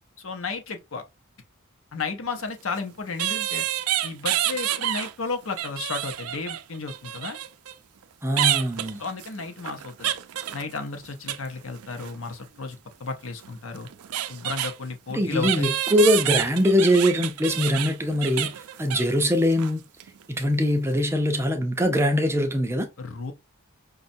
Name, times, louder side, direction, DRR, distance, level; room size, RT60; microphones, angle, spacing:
voice 1, 0.2-1.0 1.9-3.6 4.0-7.4 9.0-10.1 10.5-13.9 14.3-15.7 23.0-23.3, left 4 dB, 65° left, 0.7 m, -33 dB
sound 1, 2.3-2.4 3.2-5.1 5.4-7.7 8.4-11.5 11.7-12.2 13.4-13.5 13.8-14.7 15.4-19.3 19.5-19.7 20.0-20.2, right 12 dB, 85° right, 0.4 m, -28 dB
voice 2, 8.2-9.0 15.1-19.8 20.3-22.9, equal, 10° right, 0.4 m, -22 dB
5.2 x 2.3 x 2.6 m
head